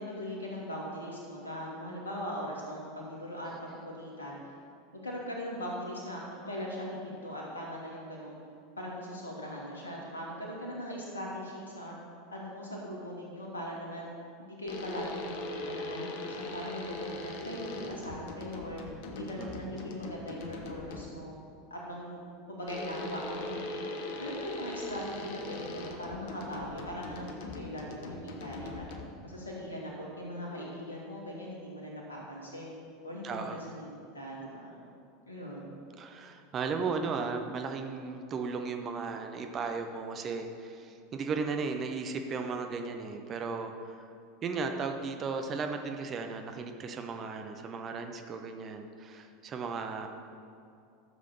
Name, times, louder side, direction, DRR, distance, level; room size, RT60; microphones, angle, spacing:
voice 1, 0.0-4.4 4.9-8.4 8.8-12.0 12.3-14.1 14.4-18.8 19.1-21.3 21.7-22.2 22.5-23.9 24.2-28.8 29.2-32.7 33.0-33.9 34.1-34.8 35.3-35.8, equal, 75° left, -3 dB, 2.3 m, -40 dB
sound 1, 14.7-21.3 22.7-29.3, left 2 dB, 55° left, 1.0 m, -41 dB
voice 2, 33.2-33.6 36.0-44.1 44.4-50.1, right 4 dB, 30° right, 5 dB, 0.9 m, -35 dB
12.5 x 7.4 x 4.4 m, 2.5 s
figure-of-eight pair, 80°, 0 cm